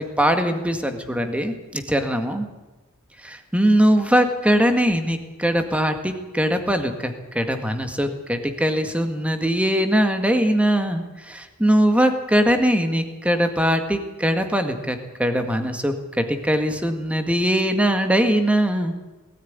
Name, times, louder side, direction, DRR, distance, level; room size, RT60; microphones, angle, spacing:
voice 1, 0.0-2.5 3.2-18.9, equal, 5° right, 6 dB, 1.9 m, -21 dB
20.5 x 14.0 x 9.6 m, 1.1 s
head